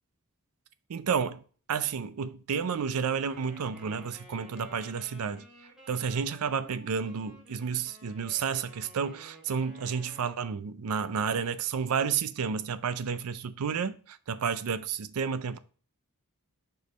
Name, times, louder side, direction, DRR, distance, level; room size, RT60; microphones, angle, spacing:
voice 1, 0.9-1.4 1.7-5.5 5.9-15.6, right 6 dB, 75° right, 0.4 m, -31 dB
Wind instrument woodwind instrument, 3.3-10.4, equal, 5° right, 2.2 m, -53 dB
5.1 x 4.6 x 4.1 m
head